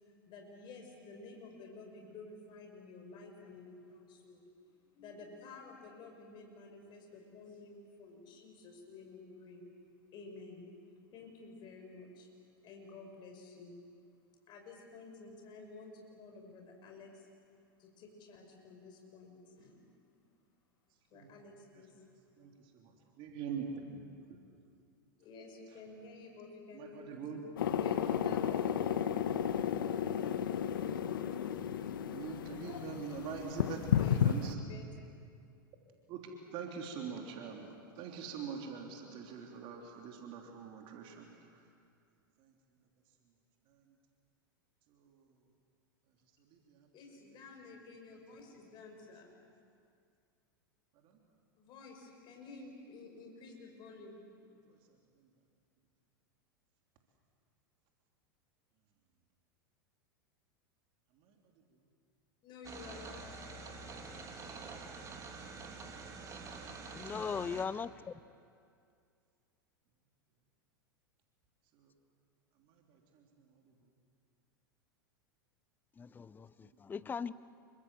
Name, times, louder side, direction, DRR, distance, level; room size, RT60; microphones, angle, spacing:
voice 1, 0.0-9.7 10.1-10.7 11.1-12.3 12.6-13.8 14.5-17.3 17.8-19.8 21.1-21.9 25.2-29.1 34.0-34.2 34.6-35.0 46.9-49.3 51.6-54.2 62.4-63.4, left 3 dB, 40° left, 2 dB, 5.4 m, -52 dB
voice 2, 22.4-24.0 24.3-24.4 26.7-27.4 32.0-33.8 34.2-34.6 36.1-41.6 42.4-42.5 44.9-45.2 46.5-46.9 54.7-54.8 61.2-61.3 71.7-71.9 72.7-73.2 76.6-76.7, right 6 dB, 45° right, 1 dB, 3.4 m, -44 dB
sound 1, 27.6-34.5, left 9 dB, 70° left, 1.2 m, -33 dB
sound 2, 62.6-67.7, right 4 dB, 30° right, 3.4 m, -47 dB
voice 3, 67.0-68.1 76.0-77.3, left 6 dB, 15° left, 17 dB, 0.6 m, -39 dB
28.0 x 24.5 x 7.5 m, 2.3 s
hypercardioid pair, 90°, 12 cm